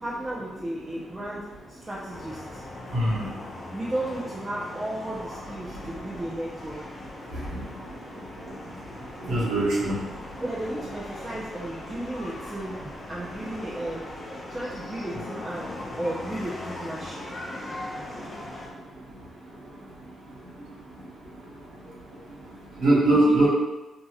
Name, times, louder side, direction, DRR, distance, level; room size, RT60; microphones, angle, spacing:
voice 1, 0.0-2.6 3.7-6.8 10.4-12.8 13.1-17.3 23.2-23.5, right 1 dB, 20° right, -7 dB, 0.6 m, -34 dB
sound 1, 2.1-18.7, left 1 dB, 40° left, 0.6 m, -40 dB
voice 2, 2.9-3.3 7.3-7.4 9.2-9.9 22.8-23.5, right 1 dB, 85° right, -7 dB, 1.0 m, -21 dB
2.8 x 2.7 x 2.3 m, 1.1 s
cardioid pair, 65°, 0 cm